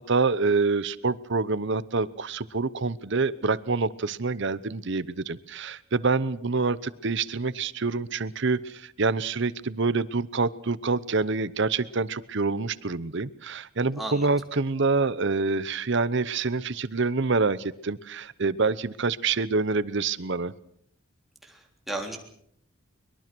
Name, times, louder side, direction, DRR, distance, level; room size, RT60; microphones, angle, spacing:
voice 1, 0.1-20.5, right 4 dB, 55° right, 17 dB, 0.9 m, -26 dB
voice 2, 14.0-14.3 21.4-22.2, right 2 dB, ahead, 1 dB, 3.5 m, -35 dB
23.0 x 22.0 x 6.2 m, 0.68 s
head